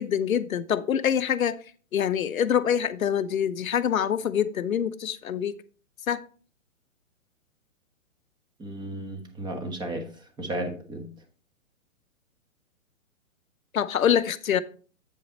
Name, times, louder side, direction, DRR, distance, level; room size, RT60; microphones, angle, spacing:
voice 1, 0.0-1.6 1.9-5.6 6.1-6.2 13.7-14.6, left 9 dB, 80° left, 14 dB, 0.7 m, -25 dB
voice 2, 8.6-11.1, right 1 dB, 10° right, 5 dB, 1.1 m, -34 dB
8.3 x 5.3 x 4.0 m, 0.41 s
hypercardioid pair, 125°, 41 cm